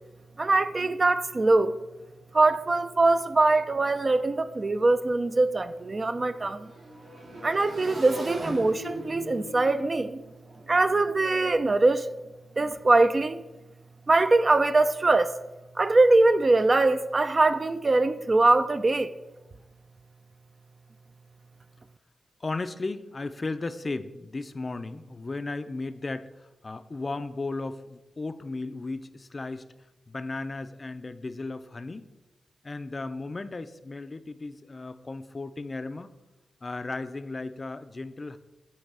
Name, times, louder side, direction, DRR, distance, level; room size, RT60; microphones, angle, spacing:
voice 1, 0.4-1.8 2.3-6.7 7.4-10.2 10.7-12.1 12.6-13.4 14.1-15.3 15.8-19.1, right 2 dB, 40° right, 0.4 m, -22 dB
Motorcycle / Engine, 4.0-4.1 4.3-11.4, equal, 75° right, 2.5 m, -41 dB
voice 2, 22.4-29.7 30.1-32.1 32.6-36.1 36.6-38.4, left 3 dB, 40° left, 0.4 m, -35 dB
8.5 x 3.3 x 6.0 m
cardioid pair, 65°, 0 cm